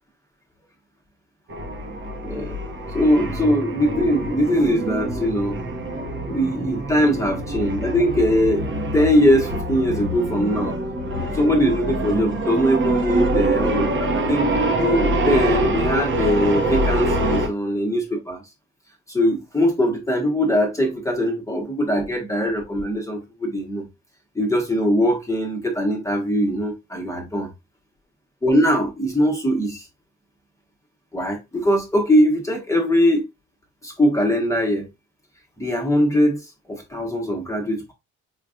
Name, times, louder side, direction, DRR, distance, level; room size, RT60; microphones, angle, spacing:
sound 1, 1.5-17.5, right 1 dB, 40° right, 0.9 m, -25 dB
voice 1, 2.2-2.6 2.9-5.6 6.2-8.6 8.9-10.8 11.3-14.5 14.8-18.4 19.1-23.9 24.3-27.5 28.4-29.8 31.1-33.2 33.8-34.9 35.6-37.9, equal, 10° left, 1.0 m, -21 dB
4.5 x 2.4 x 2.4 m
cardioid pair, 90°, 30 cm